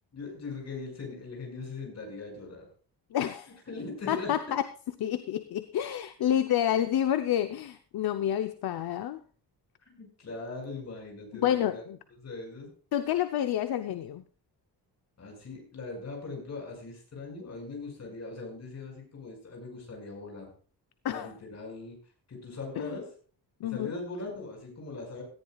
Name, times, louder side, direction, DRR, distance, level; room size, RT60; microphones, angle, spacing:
voice 1, 0.1-2.7 3.7-4.3 9.9-11.8 12.2-12.7 15.2-20.5 21.1-22.0 22.3-23.1 23.6-25.2, left 3 dB, 40° left, 1 dB, 5.9 m, -40 dB
voice 2, 3.1-3.5 4.1-4.6 5.0-9.2 11.3-12.0 12.9-14.2 21.0-21.3 22.8-23.0 23.6-24.0, left 11 dB, 65° left, 9 dB, 0.8 m, -29 dB
17.5 x 14.0 x 2.4 m, 0.41 s
wide cardioid pair, 180°, 40 cm